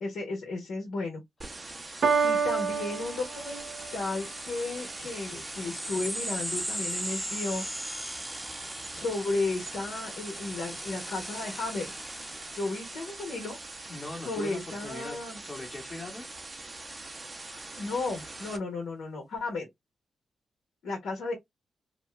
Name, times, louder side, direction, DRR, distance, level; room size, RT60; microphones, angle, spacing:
voice 1, 0.0-1.2 2.2-3.7 3.9-7.6 8.9-11.9 12.5-13.6 14.2-15.4 17.8-19.7 20.8-21.3, left 3 dB, 80° left, 1.1 m, -34 dB
sound 1, 1.4-18.6, right 2 dB, 35° right, 1.0 m, -43 dB
Piano, 2.0-4.0, right 5 dB, 65° right, 0.6 m, -28 dB
sound 2, 2.7-13.8, right 1 dB, 10° right, 1.0 m, -39 dB
voice 2, 13.9-15.2 15.4-16.3, left 2 dB, 40° left, 1.2 m, -40 dB
2.8 x 2.2 x 3.2 m
supercardioid pair, 45°, 0 cm